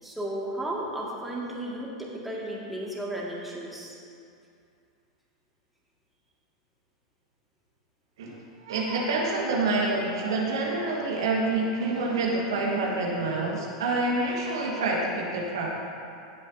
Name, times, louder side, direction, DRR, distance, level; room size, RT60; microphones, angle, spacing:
voice 1, 0.0-4.0, right 1 dB, 5° right, -5 dB, 2.1 m, -34 dB
voice 2, 8.6-15.7, right 2 dB, 65° right, -2 dB, 1.7 m, -27 dB
17.0 x 7.3 x 2.8 m, 2.4 s
figure-of-eight pair, 90°, 3 cm